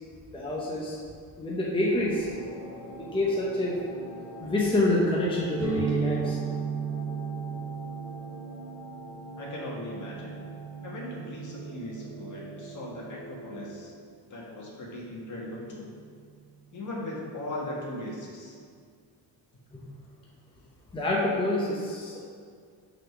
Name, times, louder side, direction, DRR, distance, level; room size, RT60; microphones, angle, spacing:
voice 1, 0.3-1.0 1.4-2.3 3.0-3.8 4.4-6.4 20.9-22.2, left 1 dB, 15° left, -5 dB, 0.8 m, -27 dB
sound 1, 1.8-13.8, right 1 dB, 80° left, 1.6 m, -44 dB
sound 2, 5.6-13.2, right 7 dB, 45° right, 1.3 m, -35 dB
voice 2, 9.4-10.3 10.8-13.9 14.3-15.9 16.7-18.5, left 1 dB, 50° left, -3 dB, 1.7 m, -38 dB
6.2 x 4.2 x 5.9 m, 2.1 s
cardioid pair, 135°, 40 cm